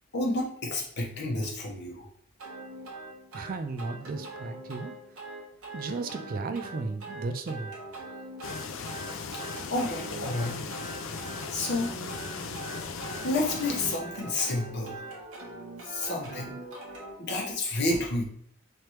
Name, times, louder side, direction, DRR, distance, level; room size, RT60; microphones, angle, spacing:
voice 1, 0.1-2.1 9.3-9.4 9.7-10.6 11.5-11.9 13.2-15.0 15.8-16.5 17.2-18.2, left 2 dB, 55° left, -1 dB, 1.0 m, -30 dB
sound 1, 2.4-17.2, right 2 dB, 90° right, 1.1 m, -42 dB
voice 2, 3.3-5.0 5.7-7.7, right 3 dB, 45° right, 8 dB, 0.3 m, -35 dB
sound 2, 8.4-14.0, left 5 dB, 70° left, 0.4 m, -38 dB
3.3 x 2.9 x 4.5 m, 0.67 s
head